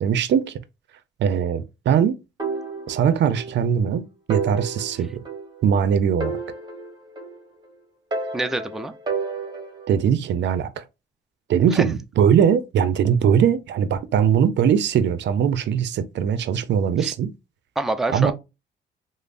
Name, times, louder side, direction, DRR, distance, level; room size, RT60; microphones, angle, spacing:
voice 1, 0.0-0.5 1.2-2.2 2.9-5.1 5.6-6.4 9.9-10.8 11.5-17.3 18.1-18.3, right 8 dB, 65° right, 0.5 m, -20 dB
sound 1, 2.4-3.6 3.9-4.0 4.3-5.8 6.2-7.7 8.1-9.9, right 4 dB, 20° right, 1.1 m, -31 dB
voice 2, 8.3-8.9 11.7-11.8 17.0-17.1 17.8-18.3, right 2 dB, ahead, 0.4 m, -26 dB
5.1 x 2.0 x 2.5 m
cardioid pair, 90°, 20 cm